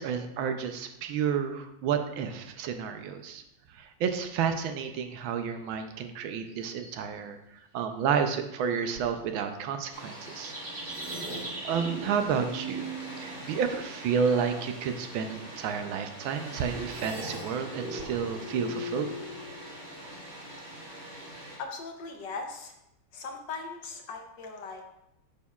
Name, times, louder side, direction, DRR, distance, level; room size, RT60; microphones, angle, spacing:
voice 1, 0.0-3.4 3.8-7.4 7.7-10.5 11.6-12.9 13.2-19.1, right 7 dB, 75° right, 7 dB, 1.3 m, -30 dB
sound 1, 5.6-5.8 6.5-6.9 7.9-8.1 8.7-8.8 9.7-9.8 10.1-12.0 14.2-14.5 16.0-16.2, right 2 dB, 60° right, 2.9 m, -41 dB
Water, 9.9-21.6, right 1 dB, 35° right, 2.7 m, -44 dB
sound 2, 10.9-14.1 16.9-20.0, equal, ahead, 2.0 m, -40 dB
voice 2, 21.6-22.7 23.1-24.9, left 4 dB, 70° left, 4 dB, 1.3 m, -39 dB
8.3 x 6.5 x 2.3 m, 0.83 s
omnidirectional pair, 2.3 m